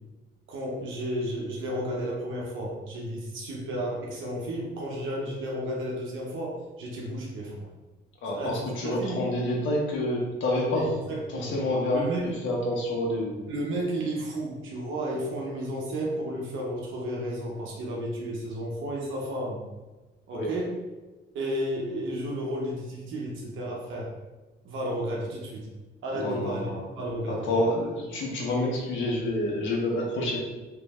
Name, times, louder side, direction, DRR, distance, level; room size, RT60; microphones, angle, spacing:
voice 1, 0.5-7.7 8.3-9.2 10.7-11.5 11.9-12.2 13.5-19.6 20.3-20.7 21.3-24.1 24.6-25.7 26.0-27.5, right 1 dB, 80° right, -3 dB, 1.0 m, -32 dB
voice 2, 8.2-10.9 11.3-13.4 20.3-20.5 26.1-26.8 27.3-30.4, left 1 dB, 75° left, -2 dB, 1.2 m, -28 dB
3.3 x 3.1 x 3.6 m, 1.2 s
cardioid pair, 90°, 20 cm